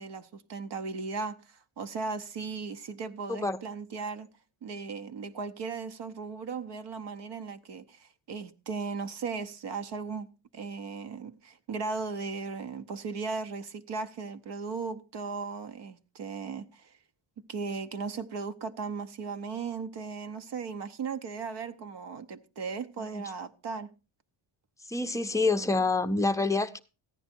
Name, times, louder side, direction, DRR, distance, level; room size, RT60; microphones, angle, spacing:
voice 1, 0.0-4.3 4.6-10.3 10.5-17.0 17.5-23.9, right 4 dB, 55° right, 0.9 m, -37 dB
voice 2, 24.9-26.8, left 3 dB, 5° left, 0.6 m, -27 dB
14.5 x 10.0 x 4.4 m
cardioid pair, 150°, 49 cm